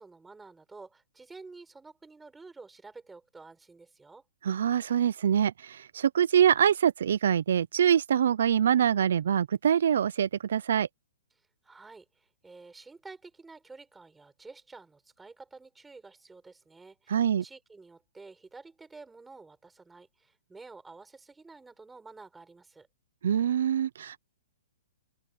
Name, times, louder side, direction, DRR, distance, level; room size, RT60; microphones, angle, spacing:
voice 1, 0.0-4.2 11.6-22.9, right 3 dB, 5° right, 5.9 m, -50 dB
voice 2, 4.4-10.9 17.1-17.4 23.2-24.2, right 9 dB, 70° right, 0.5 m, -24 dB
open air
hypercardioid pair, 160°, 0 cm